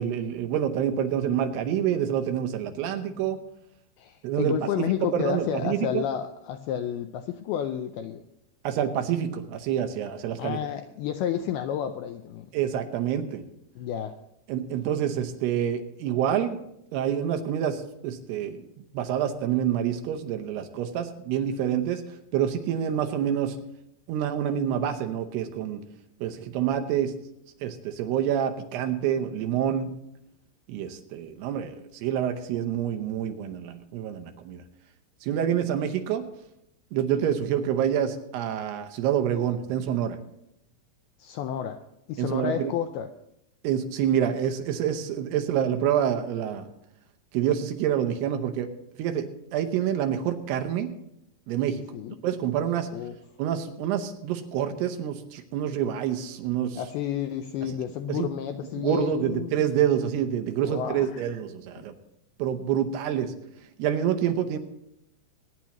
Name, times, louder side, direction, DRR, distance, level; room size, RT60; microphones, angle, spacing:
voice 1, 0.0-3.4 4.2-6.0 8.6-10.6 12.5-13.4 14.5-16.6 16.9-18.6 18.9-23.6 24.1-25.8 26.2-27.1 27.6-29.9 30.7-34.6 35.2-36.3 36.9-40.2 42.2-42.7 43.6-46.7 47.3-48.7 49.0-49.3 49.5-50.9 51.5-51.8 52.2-52.9 53.4-56.8 58.1-58.3 58.8-61.9 62.4-63.3 63.8-64.6, right 9 dB, 75° right, 6 dB, 2.7 m, -27 dB
voice 2, 4.0-8.2 10.4-12.5 13.8-14.2 24.4-24.5 41.2-41.8 42.1-43.1 51.9-52.2 52.9-53.2 56.8-59.6 60.6-61.3 61.8-61.9, left 10 dB, 85° left, 7 dB, 2.2 m, -31 dB
23.0 x 10.0 x 3.0 m, 0.81 s
omnidirectional pair, 5.1 m